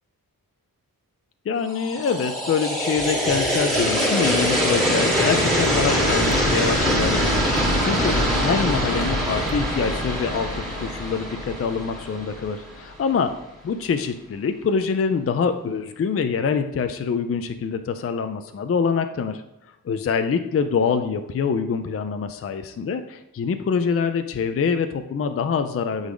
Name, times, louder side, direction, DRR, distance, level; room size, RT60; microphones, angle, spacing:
voice 1, 1.5-13.4 13.6-19.4 19.8-26.1, left 6 dB, 40° left, 8 dB, 0.4 m, -25 dB
sound 1, 1.7-12.8, equal, ahead, 2.7 m, -23 dB
sound 2, 3.0-9.6, right 3 dB, 40° right, 0.9 m, -36 dB
11.5 x 4.0 x 5.0 m, 0.91 s
wide cardioid pair, 170°, 36 cm